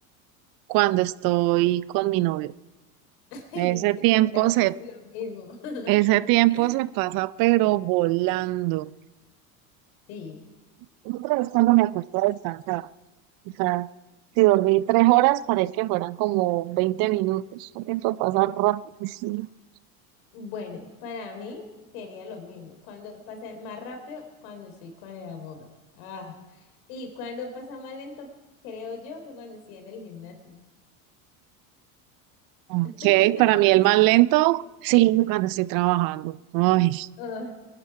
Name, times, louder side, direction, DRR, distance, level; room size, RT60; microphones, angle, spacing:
voice 1, 0.7-2.5 3.6-4.7 5.9-8.9 11.0-12.9 13.6-13.9 14.4-19.5 32.7-37.1, right 18 dB, 50° right, 0.6 m, -22 dB
voice 2, 3.3-6.3 6.5-6.9 10.1-10.4 20.3-21.7 21.9-25.7 25.9-28.3 28.6-30.6 32.8-33.4 37.2-37.5, left 4 dB, 70° left, 3.9 m, -39 dB
23.0 x 11.0 x 4.8 m
hypercardioid pair, 90°, 44 cm